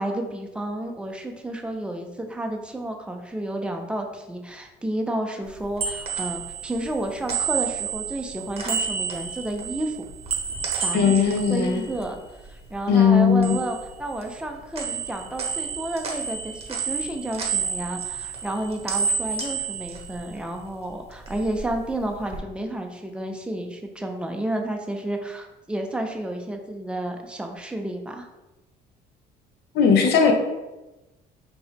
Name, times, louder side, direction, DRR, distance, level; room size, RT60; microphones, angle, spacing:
voice 1, 0.0-10.0 10.8-12.2 12.5-28.3, right 1 dB, 5° right, 3 dB, 0.6 m, -31 dB
sound 1, 5.5-12.8 13.1-14.5 14.7-20.7 21.1-22.4, right 6 dB, 35° right, 1.0 m, -31 dB
voice 2, 10.9-11.8 12.9-13.6 29.7-30.3, left 6 dB, 80° left, 4 dB, 0.8 m, -18 dB
3.8 x 2.9 x 4.1 m, 1.0 s
cardioid pair, 110°, 17 cm